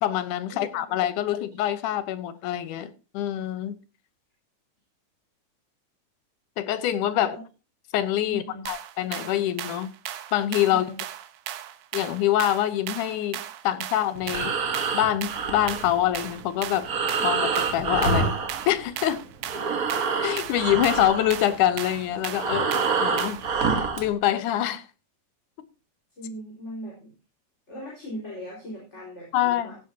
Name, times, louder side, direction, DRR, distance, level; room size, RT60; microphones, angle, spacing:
voice 1, 0.0-3.8 6.6-7.4 7.9-9.9 10.3-10.9 11.9-14.5 14.9-16.9 17.2-18.3 18.7-19.2 20.2-22.7 23.0-23.4 23.7-24.8 29.3-29.8, left 12 dB, 85° left, 2.4 m, -25 dB
voice 2, 7.1-7.4 8.3-8.6 10.7-11.0 26.2-27.1 27.7-29.8, equal, 20° left, 4.9 m, -39 dB
sound 1, 8.7-23.6, right 12 dB, 85° right, 2.4 m, -37 dB
Breathing, 14.1-19.1 19.4-24.1, right 5 dB, 55° right, 1.0 m, -27 dB
16.0 x 10.0 x 2.8 m
omnidirectional pair, 3.5 m